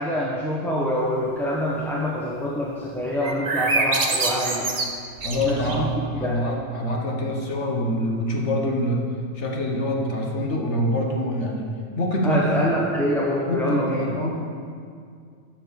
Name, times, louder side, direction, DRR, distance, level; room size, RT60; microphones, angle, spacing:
voice 1, 0.0-4.8 5.4-6.4 12.2-14.3, equal, ahead, -5 dB, 1.1 m, -25 dB
sound 1, 3.2-5.9, right 3 dB, 40° right, 1.0 m, -25 dB
voice 2, 5.2-9.0 9.4-11.7 12.0-12.8 13.5-14.3, left 1 dB, 65° left, 0 dB, 1.7 m, -25 dB
12.0 x 6.4 x 6.6 m, 2.2 s
omnidirectional pair, 1.3 m